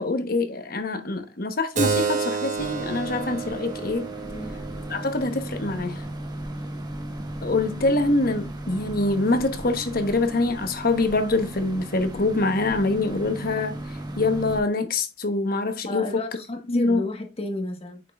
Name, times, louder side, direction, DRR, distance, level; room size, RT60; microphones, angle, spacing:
voice 1, 0.0-4.1 4.9-6.0 7.4-16.2 16.7-17.0, left 2 dB, 55° left, 1.1 m, -25 dB
Keyboard (musical), 1.7-6.9, right 5 dB, 45° right, 1.3 m, -31 dB
sound 1, 2.6-14.6, right 1 dB, 25° right, 1.2 m, -36 dB
voice 2, 4.2-4.5 15.8-18.0, left 2 dB, 35° left, 1.4 m, -32 dB
8.2 x 5.5 x 2.4 m
head